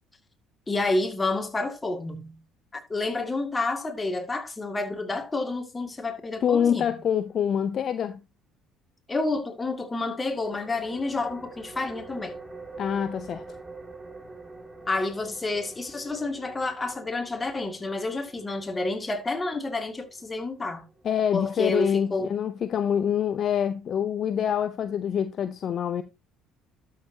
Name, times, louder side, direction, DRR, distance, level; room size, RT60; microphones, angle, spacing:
voice 1, 0.7-2.4 2.7-7.0 9.1-12.4 14.9-20.9 21.3-22.3, left 2 dB, 20° left, 2.2 m, -29 dB
voice 2, 6.4-8.2 12.8-13.4 21.0-26.0, left 8 dB, 50° left, 0.6 m, -26 dB
sound 1, 10.2-21.6, right 3 dB, 20° right, 2.2 m, -46 dB
12.5 x 6.6 x 2.8 m
hypercardioid pair, 60°, 0 cm